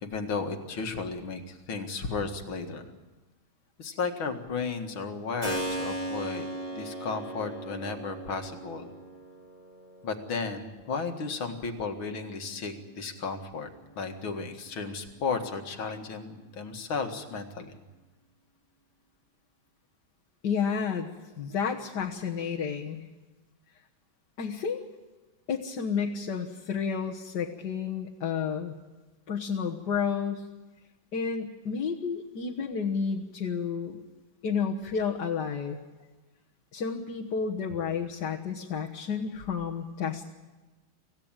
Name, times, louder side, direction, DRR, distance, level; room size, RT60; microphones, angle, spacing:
voice 1, 0.0-2.8 3.8-6.5 6.7-8.9 10.0-13.7 14.0-17.8, left 4 dB, 80° left, 5 dB, 2.7 m, -34 dB
Keyboard (musical), 5.4-14.0, right 1 dB, 20° right, 4.2 m, -39 dB
voice 2, 20.4-21.1 21.4-23.0 24.4-24.8 25.5-28.7 29.3-30.5 31.1-34.0 34.4-35.8 36.7-40.3, left 6 dB, 60° left, -1 dB, 1.9 m, -31 dB
25.5 x 16.0 x 9.0 m, 1.2 s
omnidirectional pair, 2.2 m